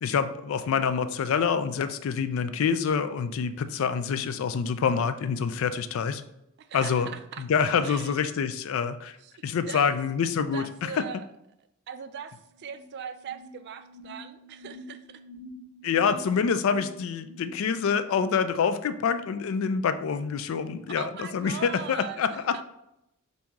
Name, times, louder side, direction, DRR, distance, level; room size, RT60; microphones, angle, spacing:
voice 1, 0.0-6.2 6.7-7.1 7.4-9.2 9.4-10.9 15.8-22.6, left 6 dB, 65° left, 11 dB, 0.3 m, -26 dB
voice 2, 6.6-7.4 7.8-8.1 9.2-10.0 10.5-11.3 11.9-15.2 16.0-16.2 21.0-22.6, right 7 dB, 50° right, 10 dB, 0.3 m, -41 dB
sound 1, 12.4-18.2, left 1 dB, 15° left, 1.6 m, -48 dB
4.5 x 2.7 x 3.5 m, 0.83 s
head